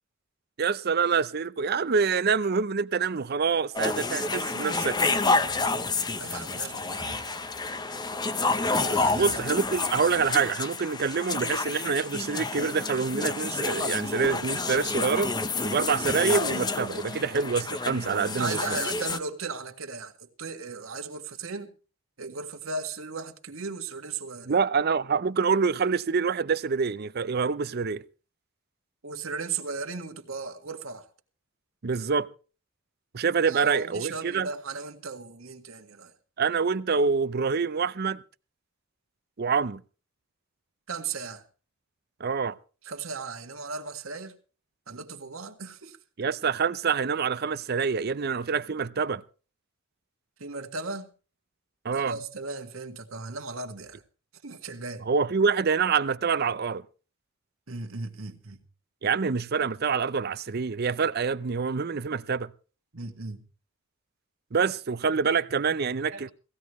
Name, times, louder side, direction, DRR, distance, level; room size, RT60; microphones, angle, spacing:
voice 1, 0.6-5.0 9.1-15.3 15.6-18.8 24.5-28.0 31.8-32.3 33.1-34.5 36.4-38.2 39.4-39.8 42.2-42.6 46.2-49.2 51.8-52.2 55.0-56.8 59.0-62.5 64.5-66.3, right 5 dB, 50° right, 0.6 m, -26 dB
sound 1, 3.8-19.2, left 3 dB, 20° left, 0.8 m, -29 dB
voice 2, 6.2-7.2 8.9-9.3 18.2-21.7 22.2-24.5 29.0-31.1 33.4-36.1 40.9-41.4 42.8-44.3 44.9-46.0 50.4-51.1 51.9-54.0 54.4-55.1 57.7-58.6 62.9-63.4 66.1-66.3, right 4 dB, 75° right, 1.8 m, -36 dB
18.5 x 16.0 x 3.2 m
head